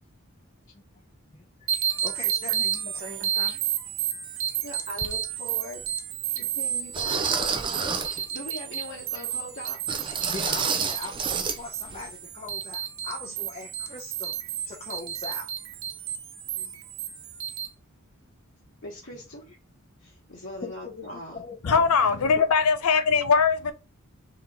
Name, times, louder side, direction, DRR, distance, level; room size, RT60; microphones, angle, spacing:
sound 1, 1.7-17.7, right 10 dB, 60° right, 0.6 m, -32 dB
voice 1, 2.0-3.6 6.3-6.4 10.1-15.5 20.6-22.3, left 3 dB, 25° left, 0.6 m, -41 dB
voice 2, 2.9-3.6 4.6-5.9 6.3-9.8 16.6-16.7 18.8-19.5 20.0-21.4, equal, 55° left, 1.2 m, -41 dB
sound 2, 5.0-5.1 5.8-5.9 6.9-8.2 9.9-11.6 11.9-12.0 12.5-12.6, right 5 dB, 20° right, 0.4 m, -29 dB
voice 3, 21.6-23.7, left 5 dB, 80° left, 0.6 m, -21 dB
4.0 x 2.9 x 3.4 m
head